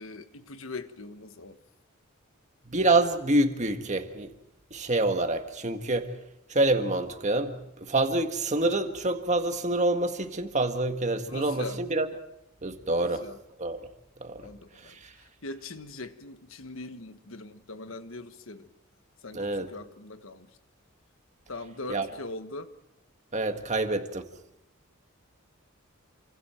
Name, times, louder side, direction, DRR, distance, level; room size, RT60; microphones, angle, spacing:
voice 1, 0.0-1.6 11.3-11.8 13.0-13.4 14.4-15.0 15.4-18.7 19.2-20.5 21.5-22.7, left 3 dB, 70° left, 1.4 m, -41 dB
voice 2, 2.7-4.3 4.7-6.1 6.5-7.5 7.8-12.1 12.6-13.2 13.6-13.8 14.2-14.4 19.3-19.7 21.9-22.1 23.3-24.2, right 2 dB, 35° right, 1.8 m, -26 dB
28.0 x 25.5 x 4.5 m
head